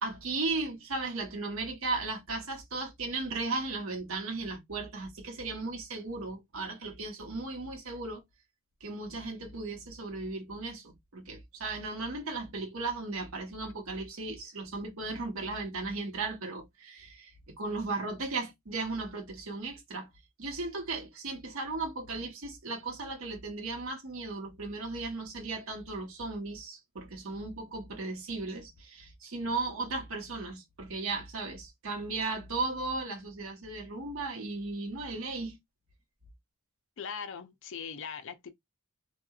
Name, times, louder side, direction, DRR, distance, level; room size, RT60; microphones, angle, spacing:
voice 1, 0.0-8.2 8.8-20.1 20.4-35.6, right 3 dB, 65° right, 1.0 m, -36 dB
voice 2, 37.0-38.5, left 6 dB, 55° left, 0.4 m, -40 dB
2.8 x 2.3 x 2.3 m
head